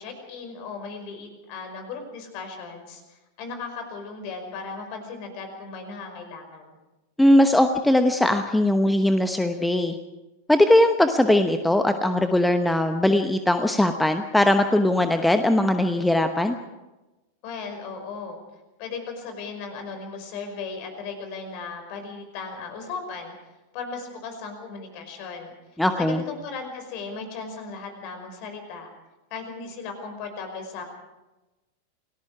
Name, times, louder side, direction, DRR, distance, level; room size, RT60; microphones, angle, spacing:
voice 1, 0.0-6.7 17.4-18.4 18.8-23.3 23.7-25.5 26.0-28.9 29.3-30.8, left 4 dB, 45° left, 6 dB, 5.4 m, -36 dB
voice 2, 7.2-10.0 10.5-16.6 25.8-26.2, left 1 dB, 5° left, 8 dB, 1.0 m, -20 dB
28.5 x 18.5 x 4.8 m, 1.1 s
figure-of-eight pair, 90°, 0 cm